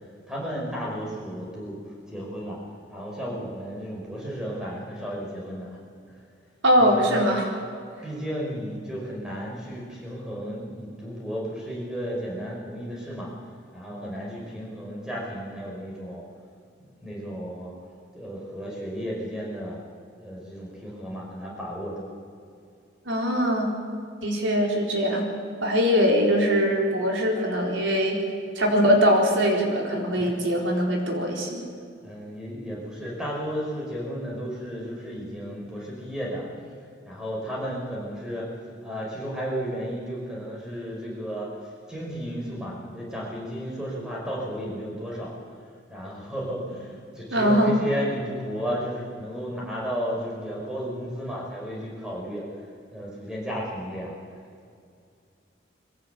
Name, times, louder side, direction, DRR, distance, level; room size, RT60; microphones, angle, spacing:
voice 1, 0.3-2.6 2.9-5.8 6.8-7.3 8.0-13.3 13.7-16.2 17.0-17.8 18.1-19.8 20.2-22.1 30.2-30.4 31.1-31.4 32.0-36.5 37.1-38.5 38.8-45.6 45.9-52.5 52.9-54.2, equal, 5° right, -4 dB, 5.4 m, -33 dB
voice 2, 6.6-7.5 23.1-23.8 24.2-25.3 25.6-28.2 28.6-31.6 47.3-47.7, equal, 85° right, 0 dB, 4.3 m, -22 dB
22.0 x 16.0 x 8.4 m, 2.4 s
head